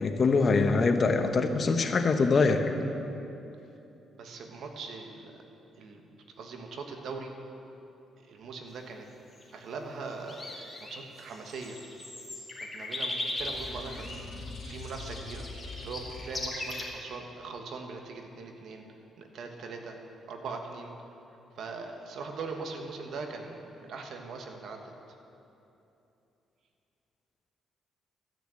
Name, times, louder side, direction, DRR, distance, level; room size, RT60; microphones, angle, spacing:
voice 1, 0.0-2.7, left 4 dB, 45° left, 6 dB, 0.9 m, -24 dB
voice 2, 4.2-5.4 5.8-6.0 6.4-7.3 8.2-9.1 9.5-11.8 12.6-15.5 15.8-18.8 19.2-20.0 20.3-20.9 21.6-24.9, right 4 dB, 70° right, 3 dB, 1.4 m, -41 dB
sound 1, 9.3-9.5 10.1-16.9, left 2 dB, 20° left, 2.3 m, -38 dB
sound 2, 13.4-16.7, left 3 dB, 65° left, 3.1 m, -43 dB
13.5 x 6.5 x 7.7 m, 2.9 s
cardioid pair, 90°, 0 cm